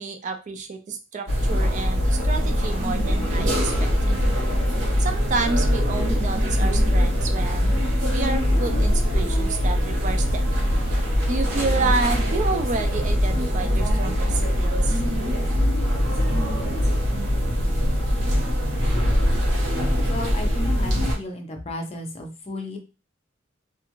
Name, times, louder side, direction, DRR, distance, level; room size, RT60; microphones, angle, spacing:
voice 1, 0.0-4.2 5.0-7.8 8.1-10.4 11.3-15.0, right 4 dB, 40° right, 5 dB, 0.4 m, -29 dB
sound 1, 1.3-21.1, equal, 85° right, 1.0 m, -22 dB
voice 2, 20.1-22.8, left 1 dB, 30° left, 3 dB, 0.6 m, -34 dB
2.5 x 2.4 x 2.9 m, 0.32 s
head